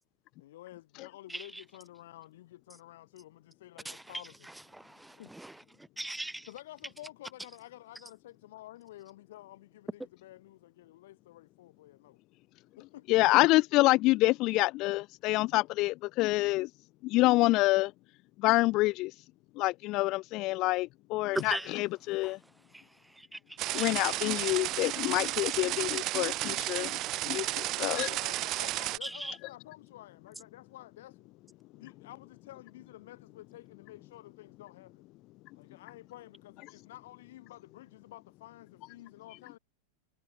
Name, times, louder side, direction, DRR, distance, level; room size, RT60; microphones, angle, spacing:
voice 1, 0.4-4.5 5.2-5.3 6.5-12.2 12.8-13.2 27.5-31.3 31.7-35.0 35.5-39.6, left 15 dB, 55° left, 6.8 m, -51 dB
voice 2, 1.3-1.6 3.8-4.0 4.7-5.6 6.0-6.5 21.3-21.8 22.2-22.4 22.7-22.8 23.1-23.9 29.0-29.4, right 1 dB, 5° right, 0.6 m, -39 dB
voice 3, 13.1-16.7 17.0-17.9 18.4-19.1 19.6-22.4 23.7-27.0 27.2-27.5 27.8-28.1, left 20 dB, 40° left, 0.4 m, -27 dB
sound 1, 23.6-29.0, right 17 dB, 35° right, 0.8 m, -33 dB
figure-of-eight pair, 90°, 0 cm